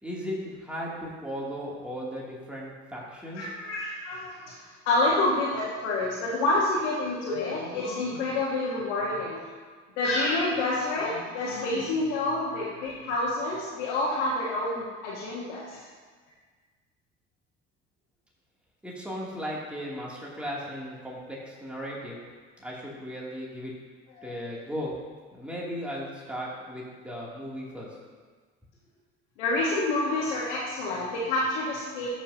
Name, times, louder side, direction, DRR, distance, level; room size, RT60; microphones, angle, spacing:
voice 1, 0.0-3.5 18.8-22.2 22.6-23.7 24.2-25.0 25.3-27.9, equal, 5° right, -6 dB, 2.7 m, -36 dB
voice 2, 3.3-4.5 4.8-9.4 10.0-15.8 24.2-24.4 29.4-32.1, left 2 dB, 80° left, -6 dB, 1.5 m, -28 dB
13.0 x 6.0 x 2.8 m, 1.5 s
hypercardioid pair, 60°, 34 cm